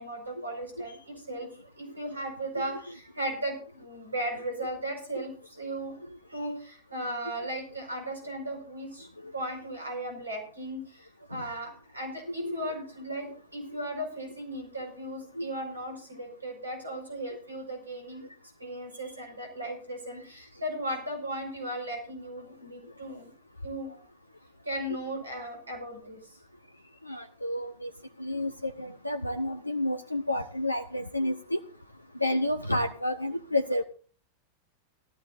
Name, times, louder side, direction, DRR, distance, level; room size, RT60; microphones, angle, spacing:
voice 1, 0.0-1.5 1.8-6.0 6.3-18.3 18.6-23.3 23.6-23.9 24.6-26.4, right 1 dB, 80° right, 3 dB, 4.8 m, -36 dB
voice 2, 27.1-27.9 28.2-28.5 29.0-31.6 32.2-33.8, left 1 dB, 85° left, 9 dB, 0.6 m, -29 dB
18.5 x 13.0 x 2.5 m, 0.40 s
figure-of-eight pair, 90°, 0 cm